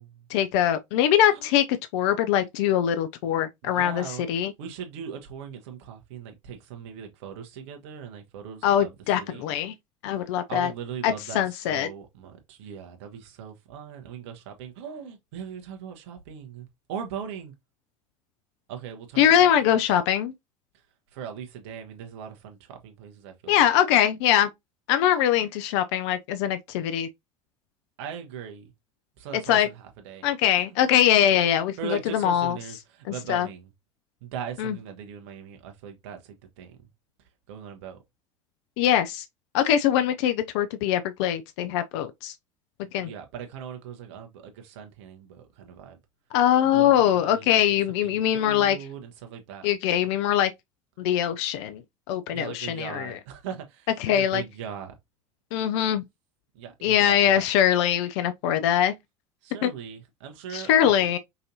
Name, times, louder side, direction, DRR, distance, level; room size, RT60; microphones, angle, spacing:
voice 1, 0.3-1.6 1.9-4.5 8.6-9.7 10.0-10.7 11.0-11.9 19.2-20.3 23.5-24.5 24.9-27.1 29.5-29.7 30.2-31.8 32.1-32.6 33.3-33.5 34.6-34.8 38.8-39.3 39.5-42.3 42.9-43.1 46.3-48.8 49.6-50.5 51.0-51.8 52.1-53.2 54.0-54.4 55.5-56.0 56.8-58.9 59.6-59.7 60.5-61.2, left 10 dB, 55° left, 0.5 m, -22 dB
voice 2, 3.6-4.2 4.6-8.9 9.2-9.5 10.5-11.4 11.7-17.5 18.7-19.8 21.1-23.6 28.0-28.7 29.2-30.3 31.8-33.7 34.2-36.8 37.5-38.0 43.0-46.0 46.6-47.7 48.0-49.7 52.3-54.9 56.5-57.4 59.4-61.1, right 8 dB, 60° right, 1.2 m, -39 dB
5.5 x 2.7 x 2.6 m
figure-of-eight pair, 70°, 17 cm